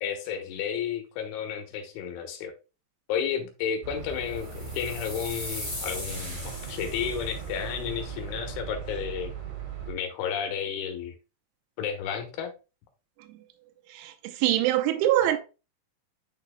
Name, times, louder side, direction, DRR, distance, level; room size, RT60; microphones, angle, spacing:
voice 1, 0.0-2.5 3.1-9.3 9.9-11.2 11.8-12.5, left 8 dB, 80° left, 3.6 m, -32 dB
sound 1, 3.8-9.9, right 6 dB, 60° right, 4.4 m, -38 dB
sound 2, 4.3-7.5, left 1 dB, 15° left, 1.3 m, -39 dB
voice 2, 13.9-15.4, right 13 dB, 85° right, 3.1 m, -24 dB
9.8 x 4.6 x 2.2 m
omnidirectional pair, 5.4 m